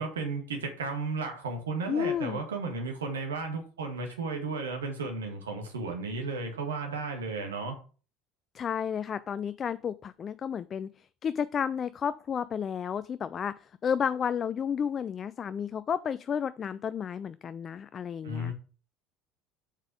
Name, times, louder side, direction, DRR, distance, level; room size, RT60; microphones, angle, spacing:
voice 1, 0.0-7.8 18.2-18.5, right 3 dB, 75° right, 3 dB, 1.9 m, -34 dB
voice 2, 1.9-2.4 8.5-18.5, left 7 dB, 35° left, 15 dB, 0.3 m, -32 dB
7.3 x 5.2 x 4.9 m, 0.37 s
figure-of-eight pair, 65°, 0 cm